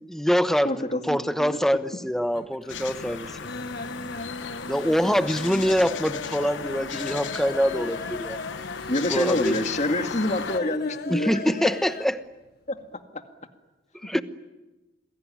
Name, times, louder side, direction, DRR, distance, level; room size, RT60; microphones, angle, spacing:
voice 1, 0.0-0.7 1.1-3.5 4.7-8.4 9.1-9.6 11.1-12.2 14.0-14.2, equal, ahead, 1.0 m, -24 dB
voice 2, 0.6-1.0 1.4-1.6 7.5-7.9 8.9-11.5 12.7-13.2 14.1-14.2, left 1 dB, 40° left, 2.1 m, -27 dB
sound 1, 1.4-2.0 2.3-2.8 3.1-12.2 12.4-12.5 12.8-12.9, left 4 dB, 60° left, 1.6 m, -38 dB
sound 2, 2.7-10.6, left 6 dB, 80° left, 1.0 m, -36 dB
28.0 x 21.0 x 9.9 m
head